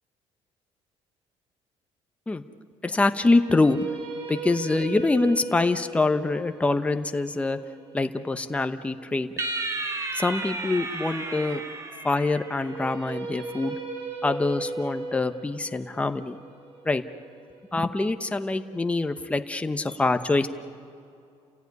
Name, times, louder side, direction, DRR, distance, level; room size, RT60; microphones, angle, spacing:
voice 1, 2.8-3.9 4.3-7.6 7.9-9.3 10.1-11.6 12.0-13.7 14.2-16.4 16.8-17.0 17.7-20.5, left 2 dB, 10° left, 8 dB, 1.0 m, -25 dB
sound 1, 3.0-9.2 12.4-18.5, right 4 dB, 60° right, 5.7 m, -38 dB
sound 2, 9.4-12.9, right 3 dB, 30° right, 1.9 m, -33 dB
30.0 x 16.0 x 9.6 m, 2.4 s
cardioid pair, 140°, 11 cm